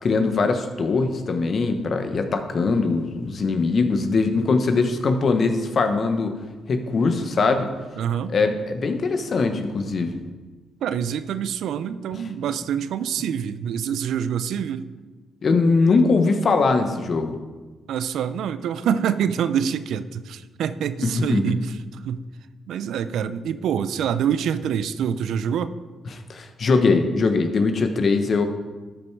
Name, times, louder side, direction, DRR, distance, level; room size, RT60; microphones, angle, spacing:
voice 1, 0.0-6.3 6.7-7.7 8.3-10.2 15.4-17.3 21.0-21.5 26.3-28.4, left 4 dB, 55° left, 7 dB, 1.1 m, -21 dB
voice 2, 8.0-8.4 10.8-14.9 17.9-21.8 22.0-22.2 22.7-25.7, right 8 dB, 75° right, 13 dB, 0.5 m, -26 dB
12.5 x 5.7 x 4.7 m, 1.3 s
supercardioid pair, 60°, 0 cm